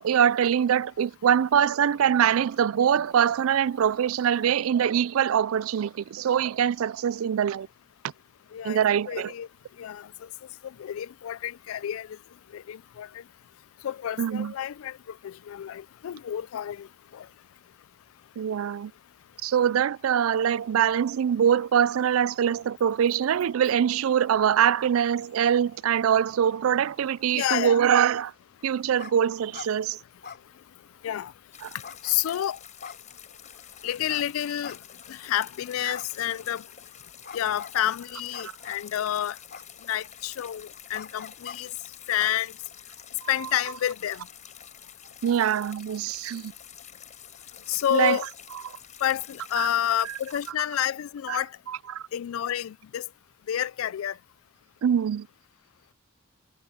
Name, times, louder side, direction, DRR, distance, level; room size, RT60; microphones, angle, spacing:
voice 1, 0.0-7.7 8.6-9.3 14.2-14.5 18.4-18.9 19.4-28.3 28.6-30.0 31.6-31.7 43.2-43.3 45.2-46.5 47.9-48.2 49.6-49.7 51.3-51.4 51.7-52.1 54.8-55.3, right 8 dB, 85° right, 0.4 m, -23 dB
voice 2, 8.5-9.5 9.8-10.3 10.6-12.2 12.5-13.1 13.8-16.9 17.1-17.3 27.3-27.8 31.0-31.3 32.0-32.6 33.8-34.8 35.1-36.6 37.3-39.4 39.9-41.7 42.1-42.5 43.3-44.3 47.7-48.3 49.0-51.5 52.1-53.1 53.5-54.2, left 11 dB, 85° left, 0.3 m, -29 dB
sound 1, 29.0-29.1 29.4-29.7 30.2-31.0 31.8-32.4 32.8-33.5 34.1-34.2 34.6-35.2 35.9-36.6 37.2-37.8 38.3-38.9 39.5-40.1 40.9-41.6 42.2-42.9, left 6 dB, 55° left, 3.2 m, -43 dB
sound 2, 31.5-50.5, left 9 dB, 35° left, 4.8 m, -48 dB
head